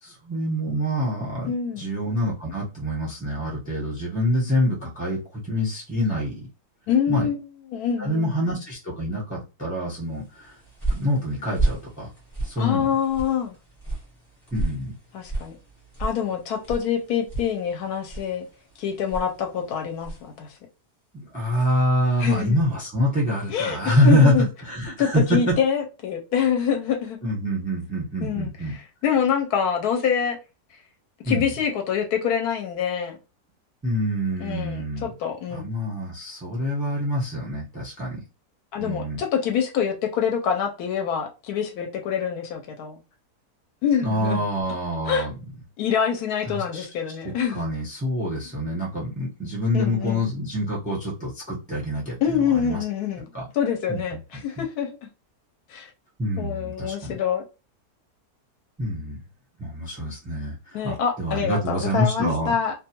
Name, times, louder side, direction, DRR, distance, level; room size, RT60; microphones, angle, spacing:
voice 1, 0.0-6.5 7.1-7.3 8.0-10.5 10.9-12.1 12.4-12.9 14.5-14.9 21.1-24.3 24.6-25.6 27.2-28.7 31.2-31.5 33.8-35.1 35.5-38.2 38.8-39.2 44.0-45.3 46.5-46.8 47.2-52.8 53.3-53.4 53.9-54.0 54.6-54.7 56.2-57.2 58.8-59.2 59.6-62.5, equal, 10° right, 0.6 m, -26 dB
voice 2, 1.5-1.9 6.9-7.4 7.7-8.4 12.6-13.6 15.1-15.6 16.0-18.5 18.8-20.6 22.2-22.6 23.5-24.5 25.0-27.2 28.2-28.5 29.0-30.4 31.2-33.2 34.4-35.7 38.7-43.0 43.8-44.4 45.1-45.3 45.8-47.7 49.7-50.3 52.2-53.2 53.5-54.9 55.7-55.9 56.4-57.4 60.7-62.7, left 7 dB, 75° left, 1.0 m, -25 dB
sound 1, 10.3-20.4, right 2 dB, 25° left, 0.8 m, -33 dB
2.5 x 2.3 x 2.8 m
omnidirectional pair, 1.8 m